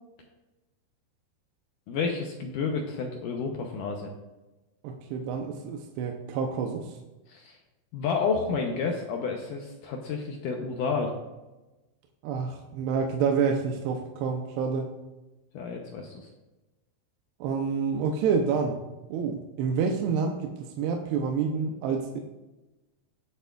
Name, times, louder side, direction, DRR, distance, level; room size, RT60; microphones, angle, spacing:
voice 1, 1.9-4.1 7.3-7.6 7.9-11.1 15.5-16.3, left 5 dB, 80° left, 1 dB, 1.9 m, -30 dB
voice 2, 4.8-6.9 12.2-14.9 17.4-18.8 19.1-22.2, right 6 dB, 90° right, 2 dB, 2.8 m, -28 dB
19.5 x 6.8 x 2.4 m, 1.1 s
omnidirectional pair, 4.8 m